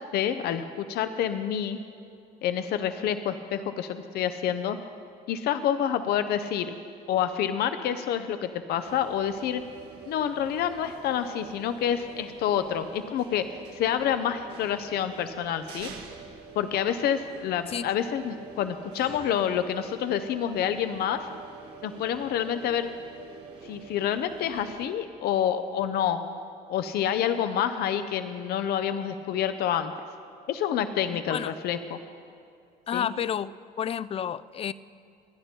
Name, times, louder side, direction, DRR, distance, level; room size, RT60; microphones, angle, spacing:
voice 1, 0.1-1.8 2.4-4.8 5.3-6.7 7.1-9.6 10.1-15.9 16.6-21.3 21.8-22.9 23.6-26.2 26.7-29.9 30.5-32.0 32.9-33.1, left 9 dB, 70° left, 10 dB, 0.7 m, -28 dB
sound 1, 8.8-24.9, right 5 dB, 90° right, 2.0 m, -46 dB
voice 2, 32.9-34.7, left 9 dB, 35° left, 18 dB, 0.4 m, -30 dB
27.0 x 10.0 x 4.5 m, 2.5 s
cardioid pair, 110°, 17 cm